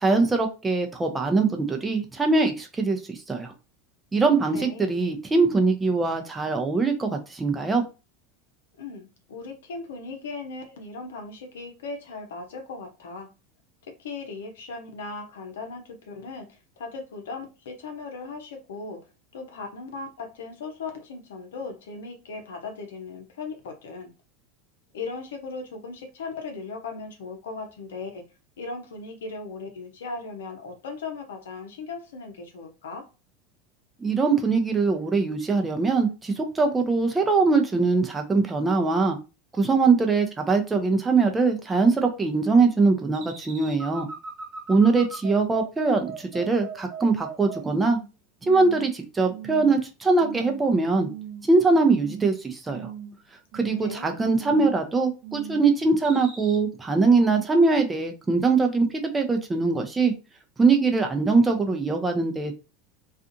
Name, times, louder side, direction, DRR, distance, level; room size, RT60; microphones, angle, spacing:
voice 1, 0.0-3.5 4.1-7.8 34.0-39.2 39.6-44.1 44.7-48.0 48.4-51.1 51.5-52.9 53.5-60.1 60.6-62.6, right 4 dB, 15° right, 4 dB, 0.6 m, -22 dB
voice 2, 4.5-5.0 8.8-13.3 13.8-19.0 19.3-24.1 24.9-28.2 28.6-33.1 53.7-54.2, left 4 dB, 75° left, 4 dB, 0.7 m, -38 dB
sound 1, 43.1-48.1 48.4-48.9 49.3-49.8 50.2-50.6 51.0-51.5 51.8-52.4 52.7-53.2 53.5-54.0 54.3-54.9 55.2-55.7 56.0-56.6, right 7 dB, 55° right, 1.1 m, -39 dB
2.4 x 2.4 x 2.6 m, 0.30 s
hypercardioid pair, 85°, 0 cm